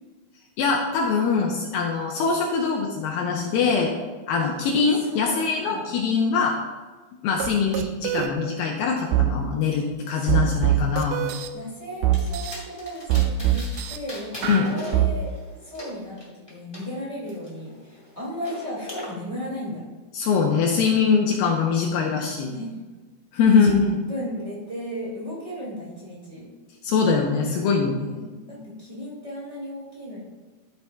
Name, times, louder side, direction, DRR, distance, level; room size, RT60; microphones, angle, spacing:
voice 1, 0.6-3.9 4.3-6.6 7.2-11.3 14.4-14.7 20.1-22.5 23.3-24.0 26.8-28.7, left 5 dB, 80° left, 0 dB, 2.4 m, -23 dB
voice 2, 5.0-5.9 10.1-10.8 11.5-15.3 15.6-19.8 22.5-22.8 23.4-23.8 24.1-26.4 28.5-30.2, equal, 30° right, -7 dB, 0.6 m, -35 dB
sound 1, 7.4-7.5 7.7-8.3 9.1-9.3 10.3-11.5 12.0-12.5 13.1-14.0 14.4-15.1, right 15 dB, 80° right, 2.3 m, -22 dB
sound 2, 12.1-13.8 14.1-16.8 17.3-19.1, left 1 dB, 15° left, 0.9 m, -41 dB
13.0 x 6.9 x 2.2 m, 1.3 s
omnidirectional pair, 4.5 m